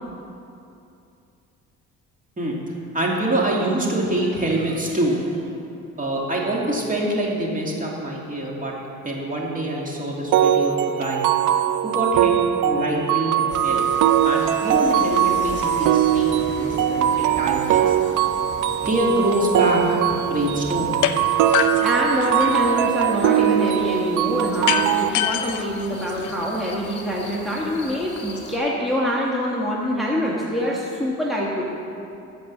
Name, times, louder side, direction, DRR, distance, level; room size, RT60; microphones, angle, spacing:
voice 1, 2.9-5.3 6.0-8.7 9.0-11.2 11.8-12.3 12.6-13.8 14.2-17.9 18.8-20.0 20.2-20.9, right 1 dB, 25° right, -3 dB, 2.4 m, -25 dB
sound 1, 10.3-25.1, right 10 dB, 85° right, 0.6 m, -21 dB
sound 2, 13.5-28.6, left 3 dB, 35° left, 1.7 m, -39 dB
sound 3, 21.0-21.2 21.5-22.7 24.7-26.7, left 10 dB, 85° left, 0.6 m, -25 dB
voice 2, 21.8-31.6, equal, ahead, -5 dB, 1.7 m, -25 dB
14.5 x 5.3 x 7.3 m, 2.7 s
cardioid pair, 90°, 30 cm